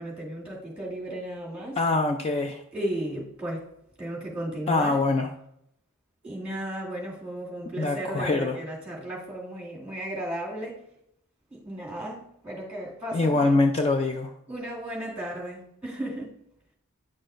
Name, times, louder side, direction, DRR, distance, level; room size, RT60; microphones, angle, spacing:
voice 1, 0.0-1.8 2.7-3.7 4.0-5.0 6.2-10.8 11.5-13.6 14.5-16.3, right 1 dB, 5° right, -4 dB, 2.3 m, -35 dB
voice 2, 1.8-2.6 4.7-5.3 7.8-8.6 13.1-14.3, left 3 dB, 25° left, 4 dB, 0.4 m, -24 dB
9.6 x 6.2 x 2.5 m, 0.76 s
head